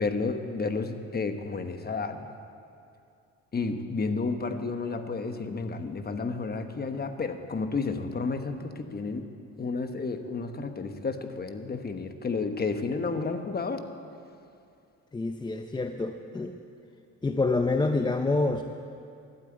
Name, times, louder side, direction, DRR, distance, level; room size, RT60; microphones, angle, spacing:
voice 1, 0.0-2.2 3.5-9.2 9.6-13.8, left 4 dB, 30° left, 8 dB, 1.0 m, -31 dB
voice 2, 15.1-16.6 17.2-18.6, left 3 dB, 15° left, 6 dB, 0.5 m, -27 dB
12.5 x 8.7 x 8.7 m, 2.5 s
cardioid pair, 90°, 30 cm